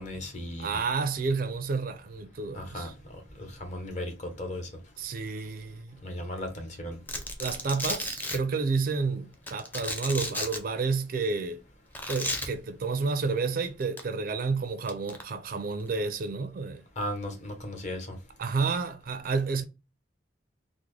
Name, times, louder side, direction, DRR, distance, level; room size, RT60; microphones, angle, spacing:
voice 1, 0.0-0.8 2.5-2.9 3.4-4.1 4.4-4.7 6.0-7.0 17.0-18.2, left 1 dB, 40° left, 0.8 m, -36 dB
voice 2, 0.6-2.9 5.0-6.0 7.4-11.6 12.1-16.8 18.4-19.6, right 4 dB, 50° right, 0.4 m, -30 dB
Domestic sounds home sounds, 7.1-8.4 9.5-10.6 11.9-12.5 13.8-14.0 14.9-15.2, left 1 dB, 10° left, 0.5 m, -33 dB
3.5 x 2.0 x 3.1 m
head